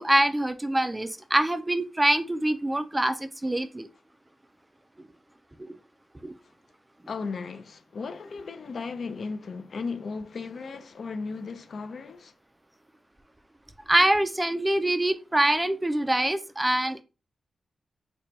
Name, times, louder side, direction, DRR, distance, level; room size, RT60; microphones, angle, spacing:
voice 1, 0.0-3.9 5.6-5.7 6.2-6.3 13.9-17.0, right 1 dB, 10° right, 0.3 m, -24 dB
voice 2, 7.1-12.3, left 4 dB, 55° left, 0.4 m, -36 dB
4.2 x 2.2 x 3.0 m
wide cardioid pair, 135°, 0 cm